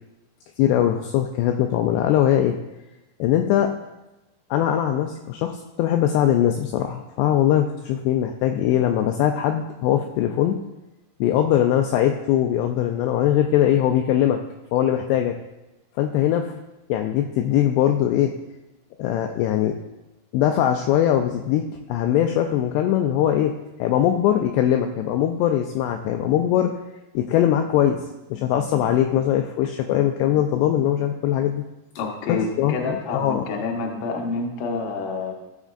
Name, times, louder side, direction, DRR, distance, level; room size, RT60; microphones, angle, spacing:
voice 1, 0.6-2.6 3.2-3.7 4.5-10.6 11.2-14.4 14.7-15.4 16.0-16.5 16.9-18.4 19.0-19.8 20.3-26.7 27.1-31.6 32.3-33.4, left 11 dB, 85° left, 4 dB, 2.4 m, -21 dB
voice 2, 32.0-35.3, left 4 dB, 70° left, 0 dB, 2.0 m, -28 dB
14.5 x 7.2 x 2.5 m, 1.0 s
omnidirectional pair, 5.4 m